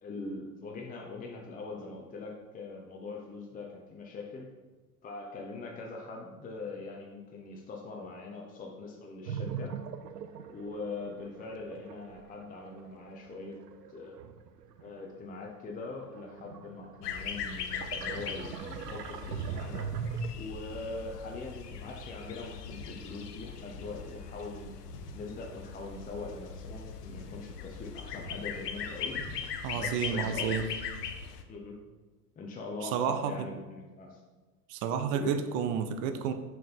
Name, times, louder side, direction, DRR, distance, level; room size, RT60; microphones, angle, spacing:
voice 1, 0.0-4.5 5.0-9.8 10.5-13.6 13.9-14.1 14.8-19.9 20.3-24.8 25.1-29.4 29.7-30.6 31.5-31.8 32.4-34.2 35.1-35.4, left 3 dB, 20° left, 0 dB, 0.8 m, -42 dB
sound 1, 9.3-15.2 15.7-20.3, right 7 dB, 85° right, 0.5 m, -41 dB
sound 2, 17.0-31.4, left 6 dB, 80° left, 0.8 m, -40 dB
Walk footsteps, 21.5-21.8 22.6-22.9 23.7-24.0 24.3-25.7 26.0-26.2 26.6-26.8 27.1-27.3 27.6-27.8 28.1-28.4 29.1-29.8, left 2 dB, 55° left, 1.6 m, -49 dB
voice 2, 29.6-30.7 32.8-33.3 34.7-36.3, right 7 dB, 45° right, 9 dB, 0.7 m, -31 dB
6.0 x 4.4 x 4.4 m, 1.2 s
hypercardioid pair, 85°, 47 cm